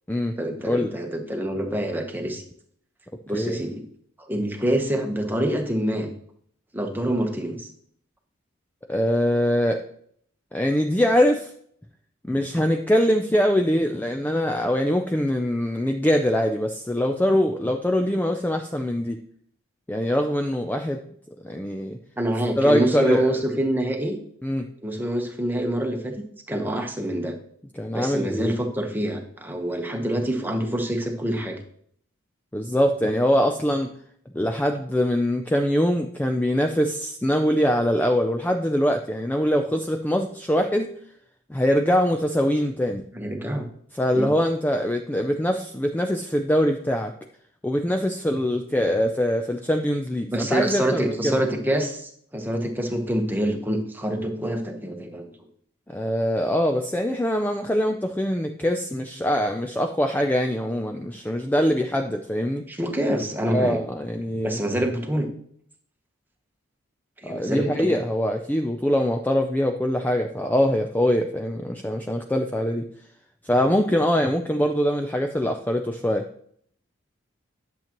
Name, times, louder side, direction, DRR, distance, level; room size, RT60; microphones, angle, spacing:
voice 1, 0.4-2.4 3.3-3.8 4.2-6.1 6.7-7.7 22.2-24.2 24.8-26.1 26.5-27.3 27.9-31.6 43.1-43.7 44.1-44.3 50.3-55.3 62.7-63.8 64.4-65.3 67.2-67.9, right 1 dB, 10° right, 3 dB, 1.0 m, -26 dB
voice 2, 8.9-9.8 10.5-11.5 12.3-19.2 19.9-21.0 21.4-22.0 22.6-23.3 24.4-24.7 27.7-28.6 32.5-33.9 34.3-40.9 41.5-43.0 43.9-47.1 47.6-51.4 55.9-62.6 63.5-64.6 67.3-72.9 73.4-76.3, equal, 10° left, 4 dB, 0.4 m, -23 dB
10.5 x 7.3 x 3.0 m, 0.64 s
head